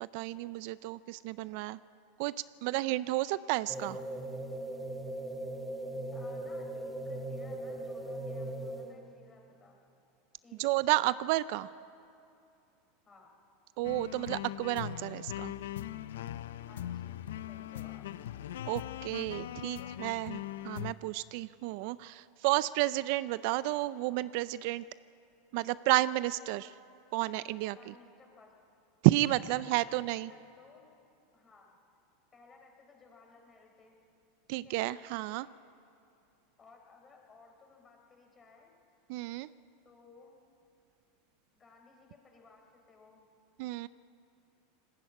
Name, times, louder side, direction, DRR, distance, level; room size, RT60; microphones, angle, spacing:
voice 1, 0.0-1.8 2.2-2.3 2.6-4.0 10.6-11.7 13.8-15.5 18.7-20.4 20.6-24.8 25.5-26.7 27.1-27.9 29.0-30.3 34.5-35.5 39.1-39.5 43.6-43.9, right 18 dB, 60° right, 17 dB, 0.4 m, -31 dB
sound 1, 3.7-9.1, right 1 dB, 5° right, 1.2 m, -39 dB
voice 2, 6.1-9.8 10.4-10.9 13.1-13.4 16.7-18.0 19.4-19.9 27.7-28.5 29.5-31.0 31.3-31.7 32.3-34.0 34.5-34.8 36.6-38.7 39.8-40.4 41.5-43.2, left 4 dB, 20° left, 1 dB, 4.4 m, -58 dB
sound 2, 13.8-20.9, left 12 dB, 85° left, 0.6 m, -40 dB
19.5 x 15.5 x 8.6 m, 2.7 s
supercardioid pair, 130°, 0 cm